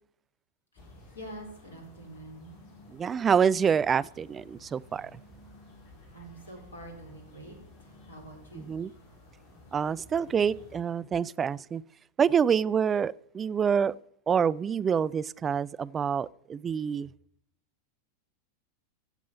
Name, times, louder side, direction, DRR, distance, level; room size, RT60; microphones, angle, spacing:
sound 1, 0.8-10.8, left 2 dB, 45° left, 4.0 m, -54 dB
voice 1, 1.1-2.6 6.1-8.7, right 1 dB, 75° left, 3.7 m, -46 dB
voice 2, 2.9-5.1 8.7-8.9 9.7-11.8 12.2-13.9 14.3-17.1, right 7 dB, 20° right, 0.3 m, -26 dB
15.0 x 7.3 x 5.6 m
figure-of-eight pair, 90°, 0 cm